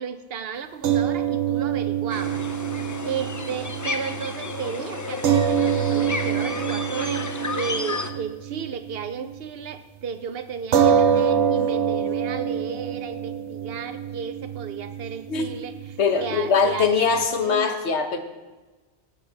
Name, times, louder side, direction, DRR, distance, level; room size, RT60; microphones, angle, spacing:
voice 1, 0.0-17.8, right 7 dB, 65° right, 11 dB, 0.9 m, -34 dB
sound 1, 0.8-9.3 9.7-9.8 10.7-17.3, right 8 dB, 85° right, 1.0 m, -26 dB
sound 2, 2.1-8.1, left 3 dB, 30° left, 0.3 m, -32 dB
voice 2, 16.0-18.2, left 5 dB, 75° left, 7 dB, 1.3 m, -22 dB
16.5 x 7.1 x 4.0 m, 1.2 s
omnidirectional pair, 1.2 m